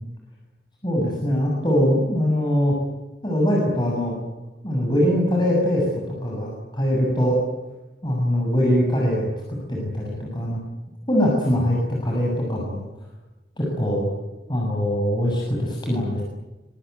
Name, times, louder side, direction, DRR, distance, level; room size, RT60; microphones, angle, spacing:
voice 1, 0.8-2.8 3.2-4.2 4.6-5.9 6.2-7.4 8.0-10.6 11.1-12.8 13.6-14.1 14.5-16.2, equal, 25° left, -3 dB, 7.1 m, -22 dB
24.5 x 24.5 x 9.5 m, 1.1 s
head